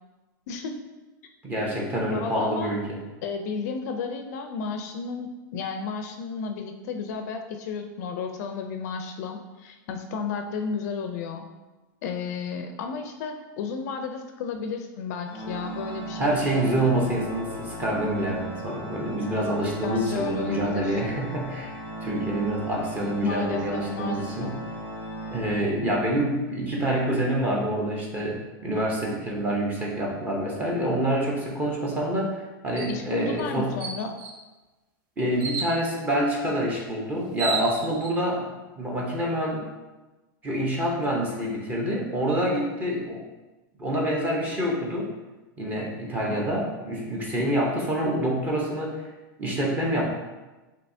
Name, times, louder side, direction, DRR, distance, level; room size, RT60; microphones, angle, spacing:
voice 1, 0.5-0.8 2.1-2.8 3.2-11.5 12.0-16.7 19.8-21.0 23.2-24.5 32.9-34.1, left 5 dB, 50° left, 5 dB, 0.4 m, -33 dB
voice 2, 1.4-3.0 16.2-21.7 22.0-24.6 25.3-33.8 35.2-38.5 38.8-39.6 40.4-43.2 43.8-45.1 45.6-49.1 49.4-50.1, right 1 dB, 15° right, -2 dB, 0.8 m, -27 dB
Organ, 15.2-26.1, right 1 dB, 10° left, 1.0 m, -37 dB
sound 1, 32.8-33.0 33.4-33.5 33.8-34.4 35.4-35.8 36.9-37.0 37.2-38.1, right 4 dB, 55° right, 0.8 m, -31 dB
6.5 x 2.8 x 2.6 m, 1.1 s
supercardioid pair, 165°, 11 cm